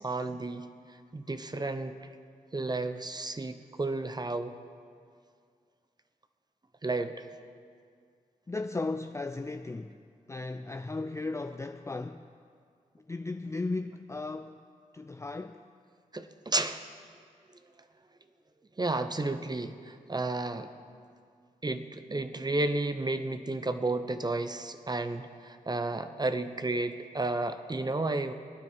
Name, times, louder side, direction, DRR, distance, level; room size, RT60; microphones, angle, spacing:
voice 1, 0.0-1.9 2.5-4.6 6.8-7.2 16.1-16.9 18.8-20.7 21.6-28.3, right 2 dB, 25° right, 0.9 m, -32 dB
voice 2, 8.5-10.0 10.3-12.3 13.1-14.6 14.9-15.6, left 3 dB, 20° left, 0.5 m, -36 dB
17.5 x 9.6 x 7.4 m
cardioid pair, 50°, 15 cm